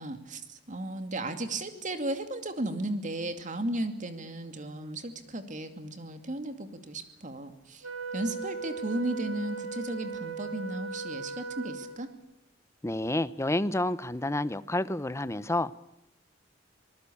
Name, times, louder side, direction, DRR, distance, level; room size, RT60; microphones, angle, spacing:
voice 1, 0.0-7.9 8.1-12.1, right 1 dB, 40° right, 2.5 m, -35 dB
Wind instrument woodwind instrument, 7.8-12.2, right 5 dB, 80° right, 2.1 m, -38 dB
voice 2, 12.8-15.7, left 1 dB, 15° left, 0.8 m, -29 dB
25.5 x 19.5 x 8.6 m
head